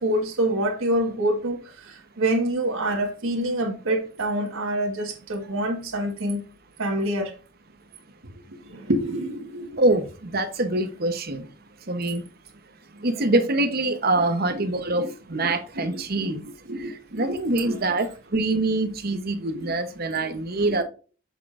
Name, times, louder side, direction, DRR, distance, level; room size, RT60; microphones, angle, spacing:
voice 1, 0.0-6.4 6.8-7.3 8.7-9.8 14.5-14.7 15.0-16.3 16.7-17.4 17.6-17.8 19.5-19.7 20.6-20.8, right 1 dB, 80° right, 1.5 m, -27 dB
voice 2, 9.8-11.5 11.9-12.2 12.9-16.4 16.8-20.8, right 2 dB, 45° right, 0.9 m, -25 dB
8.1 x 6.2 x 2.5 m
head